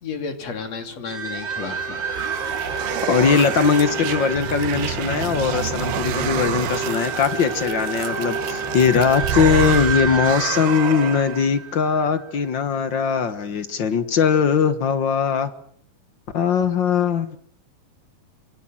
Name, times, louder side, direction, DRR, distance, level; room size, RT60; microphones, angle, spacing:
voice 1, 0.0-2.0, left 5 dB, 45° left, 7 dB, 3.5 m, -32 dB
sound 1, 1.0-12.3, right 4 dB, 30° right, 3.7 m, -29 dB
sound 2, 1.5-11.5, right 10 dB, 80° right, 3.2 m, -29 dB
voice 2, 3.0-15.5 16.3-17.4, left 6 dB, 70° left, 11 dB, 1.0 m, -20 dB
27.5 x 25.0 x 7.5 m, 0.63 s
omnidirectional pair, 4.3 m